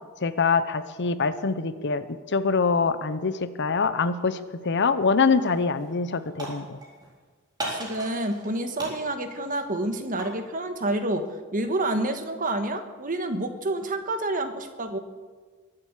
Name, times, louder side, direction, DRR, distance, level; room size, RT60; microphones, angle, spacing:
voice 1, 0.2-6.8, left 4 dB, 55° left, 13 dB, 0.8 m, -24 dB
sound 1, 5.2-5.5 5.8-7.1 7.6-8.5 8.8-10.4, right 1 dB, 20° right, 3.9 m, -37 dB
voice 2, 7.7-15.0, right 1 dB, 40° right, 7 dB, 1.4 m, -28 dB
23.0 x 7.8 x 7.5 m, 1.4 s
head